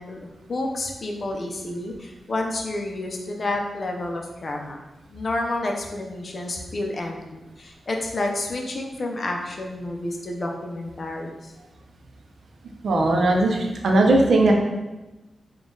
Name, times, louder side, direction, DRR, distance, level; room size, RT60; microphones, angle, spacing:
voice 1, 0.0-4.8 5.1-11.5, left 2 dB, 45° left, 1 dB, 0.6 m, -30 dB
voice 2, 12.8-14.5, right 2 dB, 75° right, 1 dB, 0.6 m, -18 dB
3.8 x 2.4 x 3.8 m, 1.1 s
wide cardioid pair, 95°, 0 cm